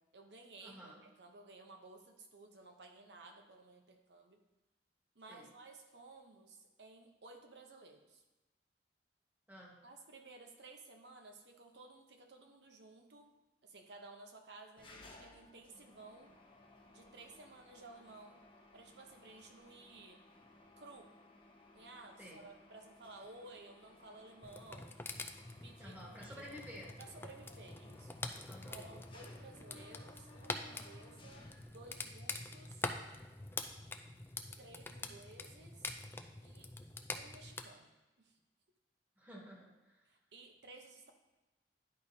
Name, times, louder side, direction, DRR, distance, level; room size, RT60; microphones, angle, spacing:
voice 1, 0.0-4.4 5.1-8.2 9.8-13.3 13.6-16.3 16.9-18.4 18.7-20.3 20.8-21.1 21.7-25.0 25.6-26.4 27.0-28.1 28.7-32.9 34.6-36.0 36.4-36.7 37.1-37.9 38.2-38.4 40.1-41.1, right 3 dB, 70° right, 4 dB, 0.9 m, -56 dB
voice 2, 0.6-1.0 5.3-5.5 9.5-9.8 22.2-22.4 25.8-26.9 28.4-28.8 39.2-40.0, equal, 10° right, -3 dB, 1.5 m, -52 dB
Mechanisms, 14.8-32.2, left 2 dB, 30° left, 0.8 m, -61 dB
sound 1, 24.4-37.6, left 3 dB, 15° left, 0.4 m, -46 dB
10.5 x 5.0 x 2.7 m, 1.1 s
head